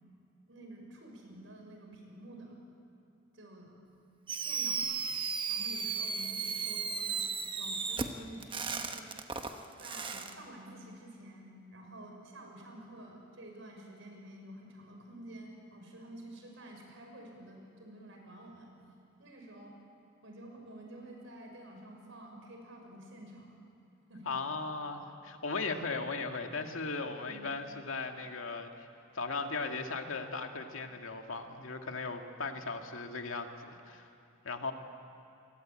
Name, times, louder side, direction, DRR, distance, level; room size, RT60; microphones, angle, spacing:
voice 1, 0.5-2.6 3.3-3.8 4.4-5.1 5.5-9.1 9.8-18.7 19.2-19.8 20.2-23.6 24.1-24.4 27.3-27.5, right 1 dB, 70° right, 2 dB, 6.3 m, -50 dB
Fireworks, 4.3-10.3, right 5 dB, 25° right, 1.2 m, -35 dB
voice 2, 24.3-28.9 29.1-34.1 34.4-34.7, left 4 dB, 80° left, 4 dB, 2.1 m, -37 dB
28.5 x 22.5 x 8.9 m, 2.7 s
head